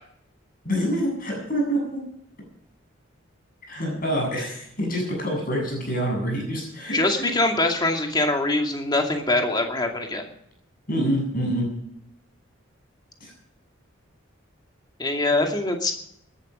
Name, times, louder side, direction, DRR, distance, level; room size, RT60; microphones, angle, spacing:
voice 1, 0.6-2.0 3.7-7.3 10.9-11.7 13.2-13.3, equal, 45° left, 0 dB, 7.8 m, -26 dB
voice 2, 6.9-10.2 15.0-15.9, left 2 dB, 20° left, 3 dB, 2.4 m, -23 dB
19.5 x 12.0 x 5.2 m, 0.72 s
head